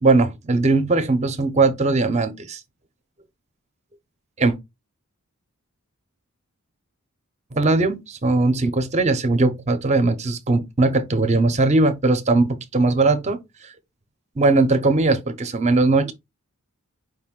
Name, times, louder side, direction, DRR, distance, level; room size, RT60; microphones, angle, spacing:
voice 1, 0.0-2.6 4.4-4.5 7.5-13.4 14.4-16.1, right 3 dB, 30° right, 0.6 m, -19 dB
4.9 x 2.6 x 3.6 m
head